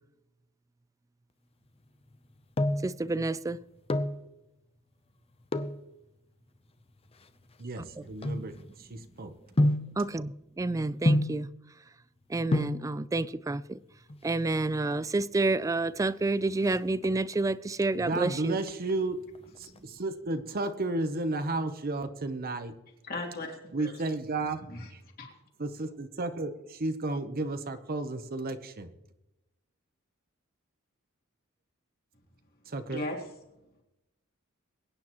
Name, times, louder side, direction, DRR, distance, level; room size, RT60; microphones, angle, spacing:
sound 1, 2.1-3.0 3.7-4.2 5.5-5.8 6.6-9.0 9.6-10.0 11.1-11.5 12.2-12.3 12.5-12.9 14.0-14.5 14.8-14.9 15.1-15.3 15.7-16.1 16.4-17.4 17.8-18.3 18.6-19.8 20.1-20.2, left 1 dB, 30° left, 0.7 m, -29 dB
voice 1, 2.8-3.6 7.8-8.1 10.0-11.5 12.3-13.8 14.2-18.6, right 2 dB, 15° right, 0.3 m, -29 dB
voice 2, 7.6-9.3 17.9-19.2 19.6-22.7 23.7-24.6 24.9-25.0 25.6-28.9 32.7-33.0, right 2 dB, 45° right, 0.9 m, -33 dB
voice 3, 23.0-23.9 24.7-24.9 25.2-25.3 32.9-33.2, left 2 dB, 45° left, 2.9 m, -36 dB
22.5 x 9.7 x 3.0 m
head